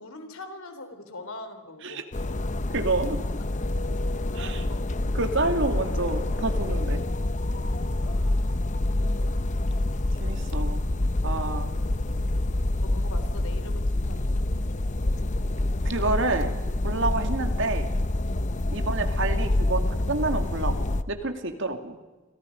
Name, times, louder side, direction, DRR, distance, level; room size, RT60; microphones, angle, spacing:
voice 1, 0.0-2.0 3.4-3.5 4.3-4.8 8.0-8.5 12.8-14.5, left 2 dB, 85° left, 7 dB, 3.8 m, -43 dB
sound 1, 2.1-21.0, left 1 dB, 35° left, 0.8 m, -27 dB
voice 2, 2.7-3.2 4.3-4.6 5.1-7.0 10.2-10.9 11.2-11.7 15.8-16.5 16.8-17.9 18.7-19.8 20.1-22.0, right 2 dB, 60° right, 7 dB, 2.4 m, -28 dB
30.0 x 24.5 x 5.3 m, 1.2 s
head